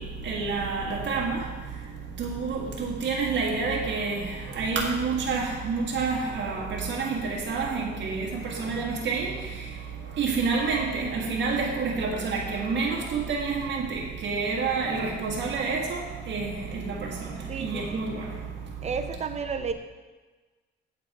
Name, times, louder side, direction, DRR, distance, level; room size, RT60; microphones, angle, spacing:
voice 1, 0.2-1.4 2.2-4.2 4.6-9.3 10.2-16.0 16.3-16.4 16.8-17.1 17.6-18.1, right 4 dB, 65° right, -1 dB, 1.6 m, -28 dB
voice 2, 17.5-18.1 18.8-19.7, right 5 dB, 35° right, 7 dB, 0.9 m, -32 dB
8.3 x 7.6 x 4.7 m, 1.3 s
cardioid pair, 90°, 20 cm